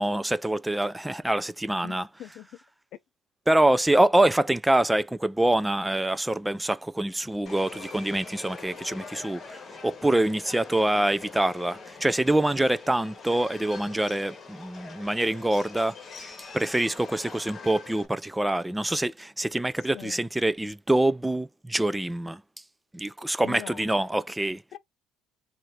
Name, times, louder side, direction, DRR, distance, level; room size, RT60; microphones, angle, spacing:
voice 1, 0.0-2.1 3.5-22.4 22.9-24.6, right 1 dB, 5° right, 0.3 m, -25 dB
voice 2, 1.8-2.5 19.9-20.2 23.4-23.9 24.7-24.8, left 12 dB, 55° left, 0.6 m, -41 dB
Subway metro underground, 7.5-18.1, left 4 dB, 35° left, 1.3 m, -44 dB
3.1 x 2.5 x 4.2 m
cardioid pair, 125°, 0 cm